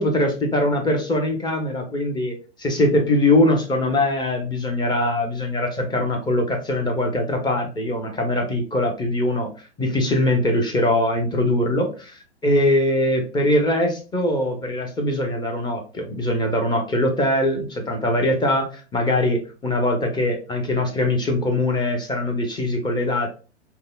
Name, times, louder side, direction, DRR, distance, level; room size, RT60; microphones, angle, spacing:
voice 1, 0.0-9.5 9.8-12.2 12.4-23.3, left 1 dB, 15° left, 4 dB, 0.7 m, -22 dB
5.3 x 2.1 x 2.2 m, 0.34 s
hypercardioid pair, 110°, 33 cm